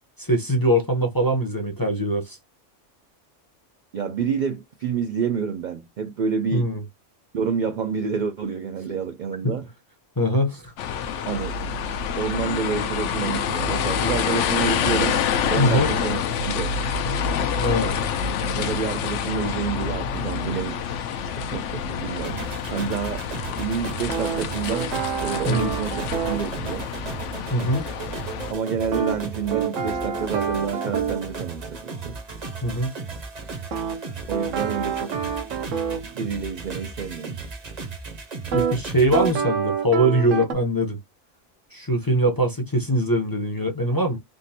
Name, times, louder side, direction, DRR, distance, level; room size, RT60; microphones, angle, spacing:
voice 1, 0.2-2.4 6.5-6.8 9.4-9.5 10.2-10.7 15.6-15.9 17.6-18.0 25.5-25.7 27.5-27.8 32.6-32.9 38.5-41.0 41.7-44.2, equal, 25° left, 0.6 m, -22 dB
voice 2, 3.9-6.7 7.3-9.7 11.3-11.6 12.2-15.2 15.5-16.2 16.5-16.8 18.5-23.3 23.6-24.9 25.2-26.9 28.5-32.2 34.3-35.2 36.0-37.4, right 6 dB, 65° right, 0.4 m, -28 dB
sound 1, 10.8-28.5, left 7 dB, 75° left, 0.9 m, -27 dB
sound 2, 22.2-39.4, right 4 dB, 40° right, 0.8 m, -36 dB
sound 3, 24.1-26.4 28.9-31.3 33.7-36.0 38.5-38.7 39.1-40.5, right 7 dB, 90° right, 1.1 m, -27 dB
3.6 x 2.5 x 2.7 m
omnidirectional pair, 1.3 m